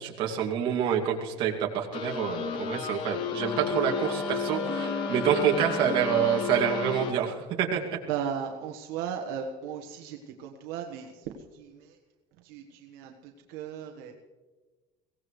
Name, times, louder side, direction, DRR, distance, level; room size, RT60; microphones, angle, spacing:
voice 1, 0.0-7.8, right 8 dB, 45° right, 0 dB, 2.4 m, -27 dB
sound 1, 1.9-7.1, left 9 dB, 40° left, 0.9 m, -34 dB
Wind instrument woodwind instrument, 3.4-7.2, left 1 dB, 10° left, 0.6 m, -35 dB
voice 2, 8.1-12.0 12.4-14.1, right 8 dB, 70° right, 2 dB, 1.5 m, -36 dB
23.0 x 17.5 x 3.3 m, 1.3 s
cardioid pair, 170°, 12 cm